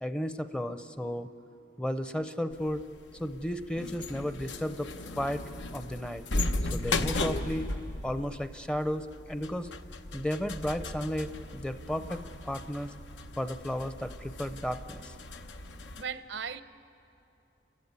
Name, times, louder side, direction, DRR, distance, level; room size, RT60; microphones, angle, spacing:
voice 1, 0.0-1.3 1.8-2.8 3.1-4.9 5.2-5.4 5.7-6.2 6.7-7.7 8.0-9.7 10.1-12.2 12.4-12.9 13.4-15.1, equal, 5° left, 10 dB, 0.6 m, -33 dB
sound 1, 2.5-16.0, left 2 dB, 90° left, 1.0 m, -36 dB
voice 2, 16.0-16.6, right 6 dB, 80° right, 12 dB, 0.7 m, -37 dB
29.5 x 15.0 x 9.7 m, 2.8 s
head